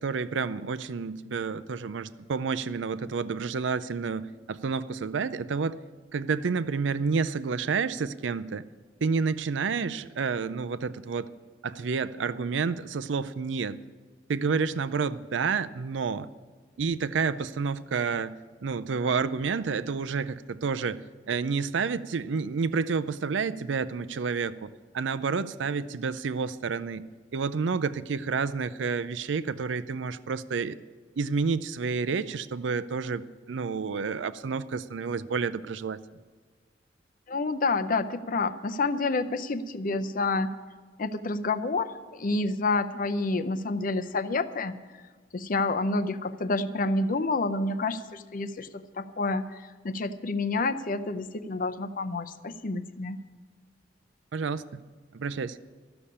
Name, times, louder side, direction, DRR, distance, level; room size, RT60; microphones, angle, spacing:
voice 1, 0.0-5.8 6.1-8.7 9.0-11.3 11.6-13.8 14.3-16.3 16.8-18.3 18.6-27.1 27.3-30.8 31.2-36.0 54.3-54.8 55.1-55.6, right 5 dB, 75° right, 15 dB, 0.5 m, -29 dB
voice 2, 37.3-40.5 41.0-44.8 45.3-53.2, left 3 dB, 50° left, 10 dB, 0.6 m, -29 dB
13.0 x 6.9 x 8.6 m, 1.5 s
head